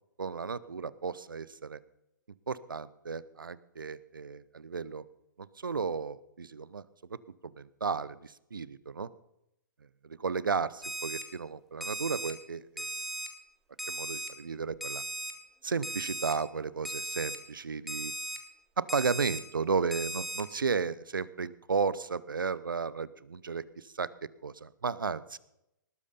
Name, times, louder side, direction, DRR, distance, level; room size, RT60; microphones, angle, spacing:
voice 1, 0.2-1.8 2.5-5.0 5.6-6.8 7.4-9.1 10.0-12.9 13.9-15.0 15.6-18.1 18.8-24.1 24.4-25.4, right 5 dB, 85° right, 19 dB, 0.7 m, -34 dB
Alarm, 10.8-11.2 11.8-12.3 12.8-13.3 13.8-14.3 14.8-15.3 15.8-16.3 16.8-17.4 17.9-18.4 18.9-19.4 19.9-20.4, right 2 dB, ahead, 1.7 m, -37 dB
19.5 x 8.6 x 5.4 m, 0.83 s
hypercardioid pair, 125°, 11 cm